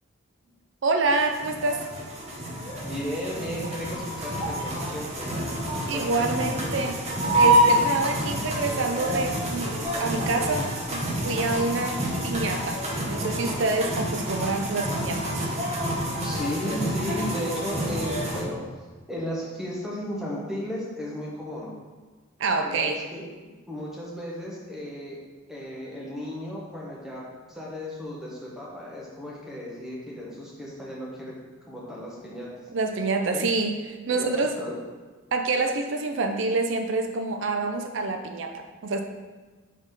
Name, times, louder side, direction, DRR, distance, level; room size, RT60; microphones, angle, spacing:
voice 1, 0.8-1.9 5.9-7.0 7.3-12.8 13.1-15.5 22.4-23.0 32.7-33.8 34.1-34.5 35.3-39.0, right 3 dB, 60° right, 5 dB, 0.4 m, -27 dB
sound 1, 1.1-18.4, right 1 dB, 30° right, 1.0 m, -27 dB
voice 2, 2.8-5.6 5.9-6.3 16.2-18.7 19.1-21.7 22.6-23.3 23.7-25.2 25.5-31.3 31.7-32.7 33.3-33.5 34.1-34.8, equal, ahead, -5 dB, 1.1 m, -35 dB
5.0 x 4.1 x 5.1 m, 1.4 s
head